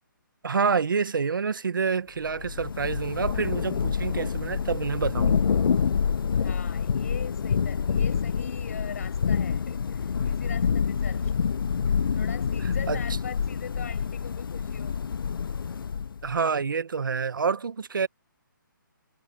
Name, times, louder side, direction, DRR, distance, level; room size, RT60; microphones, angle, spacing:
voice 1, 0.4-5.4 12.9-13.0 16.2-18.1, right 5 dB, 75° right, 1.3 m, -27 dB
Thunder / Rain, 2.2-16.3, left 6 dB, 80° left, 0.5 m, -27 dB
voice 2, 6.4-11.4 12.1-15.0, left 7 dB, 45° left, 6.3 m, -42 dB
hypercardioid pair, 175°, 11 cm